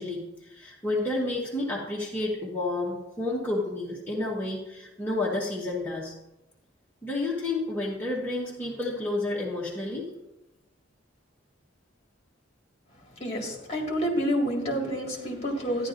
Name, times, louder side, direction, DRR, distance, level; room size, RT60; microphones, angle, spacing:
voice 1, 0.0-6.1 7.0-10.1, left 2 dB, 10° left, -6 dB, 1.1 m, -30 dB
voice 2, 13.2-15.9, equal, 30° left, 0 dB, 1.9 m, -28 dB
12.5 x 10.5 x 2.5 m, 0.95 s
head